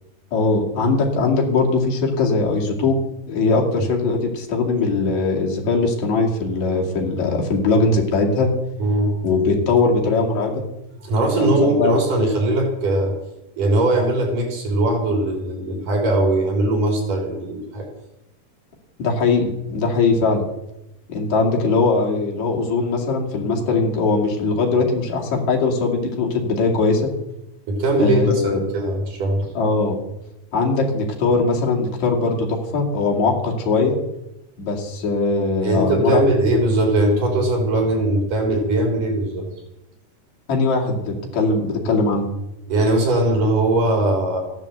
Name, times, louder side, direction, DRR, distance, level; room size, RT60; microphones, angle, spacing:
voice 1, 0.3-3.0 3.3-8.5 9.2-10.6 11.4-11.9 19.0-20.5 21.1-27.1 28.0-28.6 29.6-30.0 30.5-34.0 34.6-36.3 40.5-42.3, left 3 dB, 60° left, -1 dB, 3.8 m, -20 dB
voice 2, 8.8-9.2 11.0-13.1 13.6-17.9 27.7-29.5 35.6-39.5 42.7-44.4, right 1 dB, 80° right, 1 dB, 5.6 m, -20 dB
15.0 x 10.5 x 7.9 m, 0.89 s
omnidirectional pair, 3.7 m